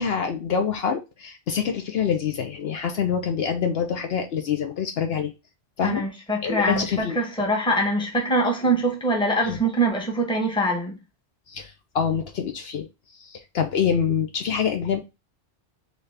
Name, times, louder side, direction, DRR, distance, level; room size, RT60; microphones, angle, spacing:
voice 1, 0.0-5.3 5.8-6.0 6.4-7.2 9.5-9.6 11.5-12.9 13.3-15.0, left 7 dB, 65° left, 0.8 m, -26 dB
voice 2, 5.8-11.0, right 1 dB, 5° left, 0.8 m, -23 dB
4.2 x 2.7 x 3.2 m
omnidirectional pair, 1.2 m